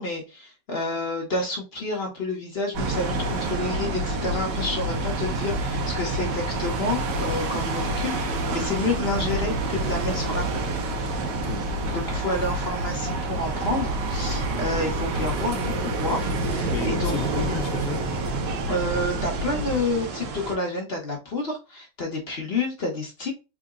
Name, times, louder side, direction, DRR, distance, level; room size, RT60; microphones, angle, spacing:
voice 1, 0.0-10.4 11.9-17.1 18.7-23.3, left 2 dB, 45° left, 0.9 m, -29 dB
sound 1, 2.7-19.8, right 1 dB, 85° right, 1.5 m, -28 dB
sound 2, 2.8-20.6, right 4 dB, 65° right, 1.2 m, -34 dB
voice 2, 11.3-12.2 16.7-18.0, left 8 dB, 70° left, 1.0 m, -34 dB
3.7 x 2.1 x 3.5 m
omnidirectional pair, 1.8 m